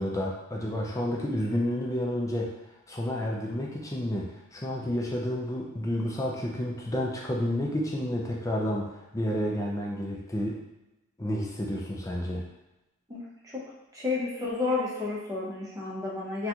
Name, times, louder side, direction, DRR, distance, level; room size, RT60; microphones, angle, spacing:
voice 1, 0.0-2.5 2.9-10.6 11.2-12.5, left 1 dB, 15° left, -2 dB, 0.4 m, -30 dB
voice 2, 13.9-16.5, left 3 dB, 15° right, -7 dB, 0.8 m, -31 dB
3.9 x 2.3 x 2.8 m, 0.95 s
head